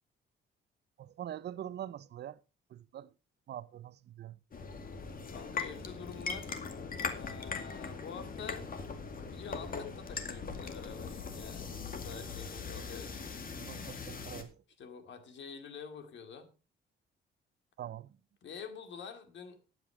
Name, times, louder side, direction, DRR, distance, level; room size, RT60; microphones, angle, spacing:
voice 1, 1.0-2.4 2.7-3.1 3.5-4.4 13.5-14.6 17.8-18.2, right 11 dB, 60° right, 0.6 m, -44 dB
sound 1, 4.5-14.4, left 5 dB, 45° left, 2.2 m, -40 dB
voice 2, 5.3-6.5 7.0-8.7 9.1-13.3 14.8-16.5 18.4-19.6, left 6 dB, 65° left, 2.4 m, -47 dB
12.0 x 9.1 x 4.9 m
cardioid pair, 90°, 20 cm